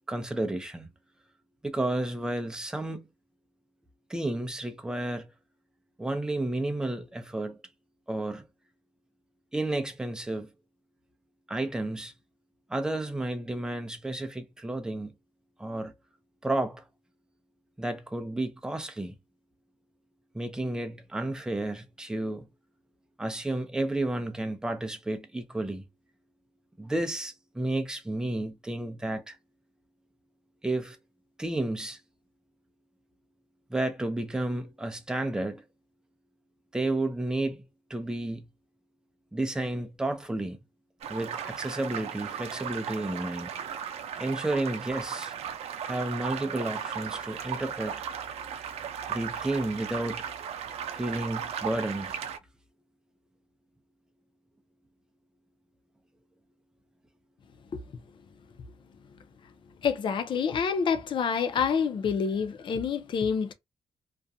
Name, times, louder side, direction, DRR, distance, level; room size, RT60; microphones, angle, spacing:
voice 1, 0.1-0.9 1.6-3.1 4.1-5.3 6.0-7.6 8.1-8.5 9.5-10.5 11.5-12.1 12.7-15.1 15.6-15.9 16.4-16.8 17.8-19.1 20.3-22.5 23.2-25.8 26.8-29.4 30.6-31.0 31.4-32.0 33.7-35.6 36.7-37.6 37.9-38.4 39.3-40.6 41.1-43.5 44.2-45.3 45.8-48.0 49.1-50.2 50.9-52.2, right 2 dB, 5° right, 0.5 m, -31 dB
sound 1, 41.0-52.4, right 8 dB, 80° right, 0.4 m, -36 dB
voice 2, 59.8-63.5, left 6 dB, 50° left, 0.5 m, -27 dB
2.4 x 2.2 x 2.6 m
cardioid pair, 115°, 10 cm